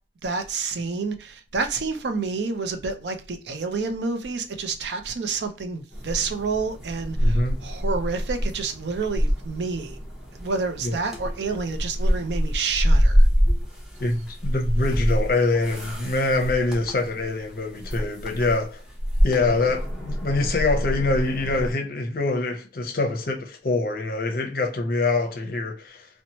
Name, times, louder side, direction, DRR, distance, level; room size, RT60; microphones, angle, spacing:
voice 1, 0.2-10.0 10.3-13.2, right 4 dB, 80° right, 0.5 m, -29 dB
sound 1, 5.9-21.7, equal, 5° right, 0.6 m, -26 dB
voice 2, 7.2-7.6 10.8-10.9 14.0-18.8 19.2-26.1, left 3 dB, 55° left, 0.6 m, -25 dB
2.9 x 2.1 x 2.8 m
head